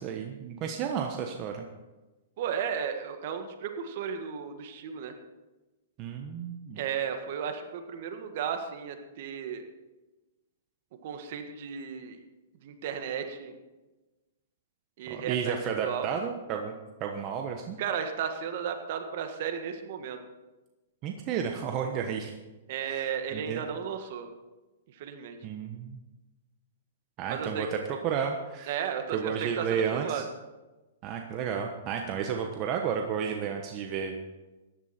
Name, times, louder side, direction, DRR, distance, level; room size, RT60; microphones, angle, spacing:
voice 1, 0.0-1.6 6.0-6.8 15.1-16.7 17.0-17.8 21.0-22.3 22.8-23.6 25.4-26.0 27.2-28.8 29.1-30.2 31.0-34.1, right 7 dB, 35° right, 3 dB, 1.1 m, -32 dB
voice 2, 2.4-5.1 6.8-9.6 11.0-12.2 12.6-13.6 15.0-15.6 15.8-16.1 17.8-20.2 22.7-24.3 24.9-25.4 27.3-27.7 28.7-30.2, right 7 dB, 55° right, 6 dB, 1.7 m, -34 dB
15.0 x 11.0 x 4.4 m, 1.1 s
hypercardioid pair, 140°, 0 cm